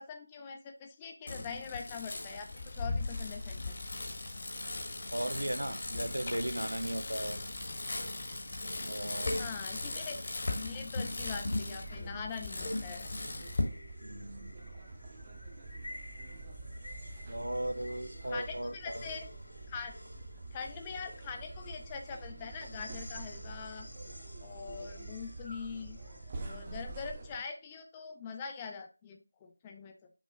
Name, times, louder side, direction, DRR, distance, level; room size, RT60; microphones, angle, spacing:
voice 1, 0.0-3.8 9.4-13.1 18.3-19.3 19.7-20.0 20.5-23.9 24.4-26.0 26.4-30.1, left 5 dB, 15° left, 5 dB, 0.5 m, -43 dB
Bicycle, 1.3-13.6, left 2 dB, 40° left, 1.2 m, -37 dB
voice 2, 5.1-7.4 8.8-9.4 14.0-14.5 17.3-19.1, right 1 dB, 80° right, 11 dB, 0.7 m, -37 dB
sound 1, 11.2-26.7, left 1 dB, 70° left, 1.8 m, -53 dB
sound 2, 11.2-27.4, right 2 dB, 25° right, 0.8 m, -47 dB
6.2 x 3.0 x 5.1 m, 0.32 s
figure-of-eight pair, 165°, 0 cm